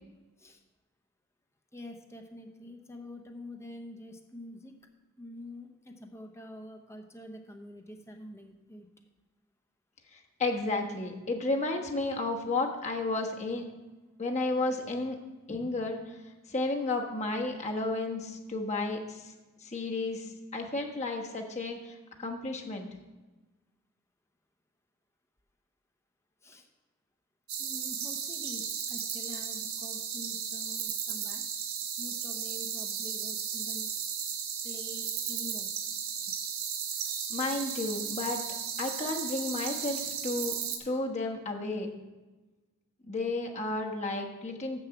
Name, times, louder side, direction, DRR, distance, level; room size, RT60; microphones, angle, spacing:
voice 1, 1.7-4.7 5.2-8.9 26.4-26.7 27.6-31.4 32.0-33.9 34.6-35.7, left 1 dB, 15° left, 4 dB, 0.8 m, -46 dB
voice 2, 10.1-13.6 14.2-15.2 15.5-16.2 16.5-19.3 19.6-22.9 37.3-38.4 38.8-40.6 40.8-41.9 43.1-44.8, left 2 dB, 35° left, 1 dB, 1.2 m, -32 dB
sound 1, 27.5-40.8, right 7 dB, 85° right, 1.1 m, -35 dB
7.2 x 6.7 x 7.0 m, 1.2 s
head